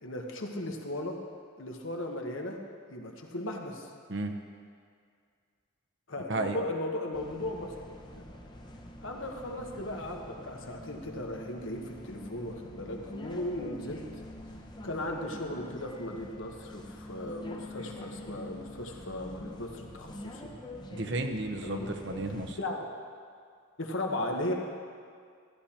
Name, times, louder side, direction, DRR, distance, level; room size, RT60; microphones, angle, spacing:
voice 1, 0.0-1.2 1.6-2.6 2.9-3.9 6.1-7.7 8.1-8.2 9.0-14.0 14.8-20.5 21.6-21.9 22.6-22.7 23.8-24.5, left 1 dB, 70° left, 1 dB, 1.3 m, -36 dB
sound 1, 7.1-22.5, left 1 dB, 20° left, 0.8 m, -46 dB
voice 2, 20.9-22.6, right 2 dB, 55° right, 4 dB, 0.9 m, -33 dB
13.5 x 11.5 x 4.4 m, 2.2 s
head